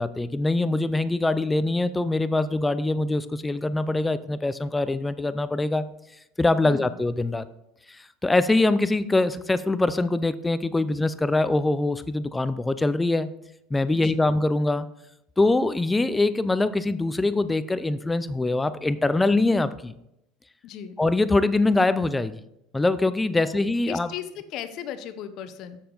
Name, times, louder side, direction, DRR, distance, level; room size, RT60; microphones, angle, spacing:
voice 1, 0.0-5.9 6.4-7.5 8.2-13.3 13.7-14.9 15.4-19.9 21.0-22.3 22.7-24.1, left 2 dB, 10° left, 14 dB, 0.4 m, -23 dB
voice 2, 6.6-7.0 13.9-14.3 20.6-21.0 23.4-25.8, left 9 dB, 55° left, 11 dB, 0.8 m, -37 dB
7.3 x 6.7 x 3.9 m, 0.81 s
supercardioid pair, 110°, 0 cm